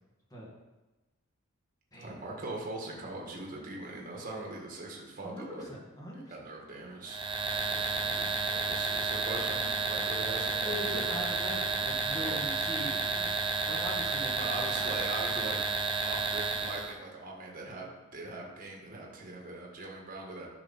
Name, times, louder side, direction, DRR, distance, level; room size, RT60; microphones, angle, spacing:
voice 1, 1.9-5.7 6.3-7.2 7.5-11.0 12.2-12.4 14.4-20.5, right 2 dB, 40° right, -1 dB, 1.7 m, -41 dB
voice 2, 5.2-6.3 10.6-13.4 13.7-14.5 14.8-15.0, left 1 dB, 15° left, -3 dB, 2.0 m, -41 dB
sound 1, 7.1-16.9, right 4 dB, 20° right, 0.7 m, -31 dB
11.0 x 5.7 x 4.2 m, 1.1 s
head